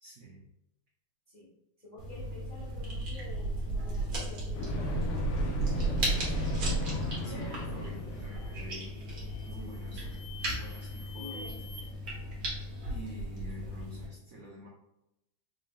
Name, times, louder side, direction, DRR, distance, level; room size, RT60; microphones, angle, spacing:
voice 1, 0.0-0.4 7.2-9.0 9.4-11.5 11.9-12.2 12.9-14.7, right 2 dB, 65° right, -4 dB, 0.8 m, -48 dB
voice 2, 1.8-5.1 5.8-6.4 9.5-9.7 11.1-11.6, left 2 dB, 30° left, -7 dB, 0.9 m, -49 dB
sound 1, 2.0-14.1, right 1 dB, 50° right, 1.4 m, -35 dB
sound 2, 4.5-8.7, left 2 dB, 75° left, 1.6 m, -36 dB
sound 3, 7.4-7.7 8.2-8.7 9.2-11.8, left 2 dB, 85° right, 1.6 m, -50 dB
4.8 x 3.2 x 2.3 m, 0.84 s
omnidirectional pair, 2.4 m